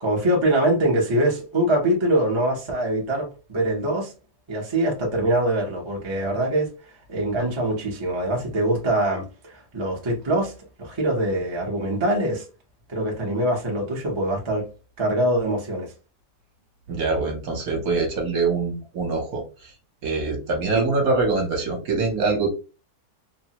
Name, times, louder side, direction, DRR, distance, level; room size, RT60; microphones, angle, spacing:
voice 1, 0.0-4.1 4.5-6.7 7.1-10.5 10.8-12.4 12.9-14.7 15.0-15.9 17.7-17.8, right 1 dB, 30° right, 0.5 m, -23 dB
voice 2, 16.9-19.4 20.0-22.5, right 3 dB, 60° right, 1.2 m, -24 dB
3.2 x 2.1 x 2.8 m
omnidirectional pair, 1.8 m